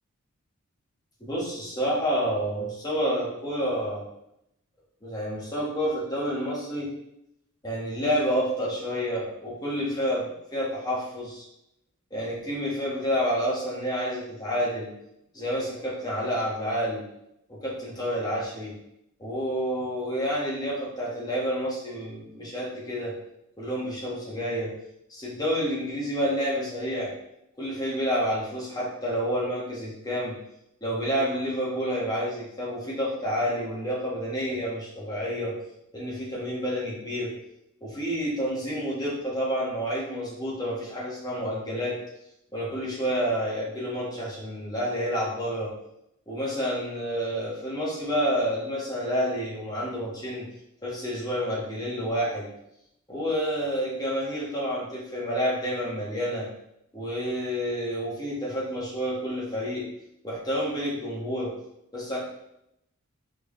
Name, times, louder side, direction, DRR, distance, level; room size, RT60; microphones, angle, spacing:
voice 1, 1.2-4.0 5.0-6.9 7.6-11.4 12.1-14.9 15.3-17.0 17.5-18.7 19.2-23.1 23.6-24.7 25.1-27.1 27.6-30.4 30.8-35.6 35.9-37.3 37.8-42.0 42.5-45.7 46.3-50.4 50.8-52.5 53.1-56.5 56.9-59.9 60.2-61.5 61.9-62.2, equal, 15° left, -6 dB, 1.2 m, -29 dB
4.4 x 3.4 x 3.2 m, 0.81 s
head